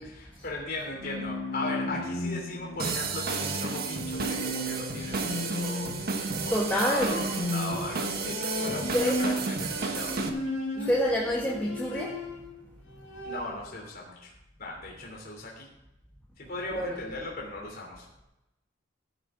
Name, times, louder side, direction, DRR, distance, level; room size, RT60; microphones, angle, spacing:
voice 1, 0.0-5.9 6.5-10.2 13.2-14.3 14.6-15.7 16.4-18.1, left 2 dB, 50° left, -1 dB, 3.1 m, -38 dB
Bowed string instrument, 0.8-12.6 12.9-13.7, equal, 90° left, 3.9 m, -35 dB
sound 1, 2.8-10.3, right 4 dB, 55° right, 1.5 m, -32 dB
voice 2, 6.5-7.2 8.8-9.2 10.7-12.2 16.7-17.0, equal, 10° left, -2 dB, 1.7 m, -27 dB
15.5 x 9.6 x 3.8 m, 0.93 s
head